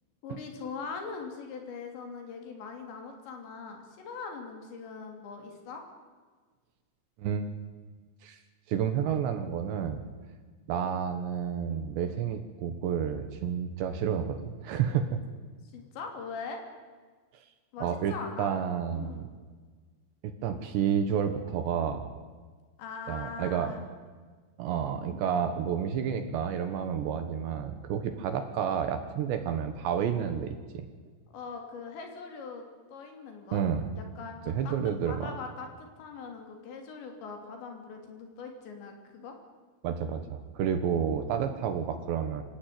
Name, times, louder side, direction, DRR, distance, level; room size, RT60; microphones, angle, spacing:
voice 1, 0.2-5.8 15.7-16.6 17.7-18.5 18.9-19.3 22.8-23.8 31.3-33.6 34.0-34.7 35.1-35.7 36.0-39.3, left 5 dB, 60° left, 4 dB, 5.0 m, -41 dB
voice 2, 7.2-7.5 8.2-8.4 8.7-10.0 10.7-15.2 17.8-19.3 20.2-22.1 23.1-23.7 24.6-30.9 33.5-33.9 34.5-35.3 39.8-42.4, right 8 dB, 70° right, 8 dB, 3.2 m, -30 dB
26.0 x 16.5 x 9.4 m, 1.4 s
omnidirectional pair, 6.0 m